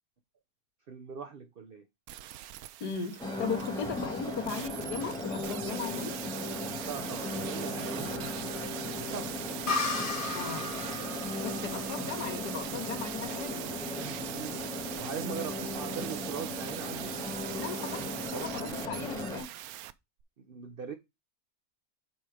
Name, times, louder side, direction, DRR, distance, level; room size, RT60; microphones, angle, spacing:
voice 1, 0.9-1.8 6.8-8.7 9.0-9.4 14.3-14.7 15.0-17.2 18.3-18.6 20.4-20.9, right 6 dB, 45° right, 0.8 m, -41 dB
sound 1, 2.1-19.9 20.2-20.3, right 13 dB, 70° right, 1.0 m, -41 dB
voice 2, 2.8-6.1 10.3-10.7 11.4-13.6 17.5-19.5, left 6 dB, 80° left, 1.8 m, -37 dB
sound 2, 3.2-19.4, left 1 dB, ahead, 2.2 m, -37 dB
sound 3, 9.7-13.2, left 3 dB, 35° left, 1.5 m, -36 dB
6.9 x 4.5 x 4.9 m
omnidirectional pair, 1.7 m